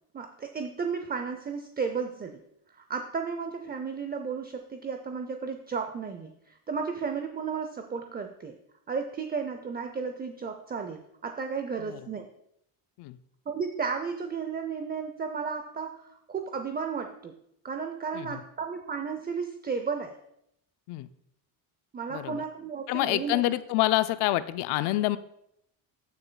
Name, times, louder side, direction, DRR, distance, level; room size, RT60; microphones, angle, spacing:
voice 1, 0.1-2.4 2.7-8.6 8.9-12.3 13.5-17.4 17.6-20.2 21.9-23.5, right 5 dB, 25° right, 6 dB, 0.6 m, -34 dB
voice 2, 22.1-22.4 22.9-25.2, left 16 dB, 80° left, 14 dB, 0.5 m, -27 dB
14.0 x 6.7 x 2.3 m, 0.76 s
cardioid pair, 95°, 40 cm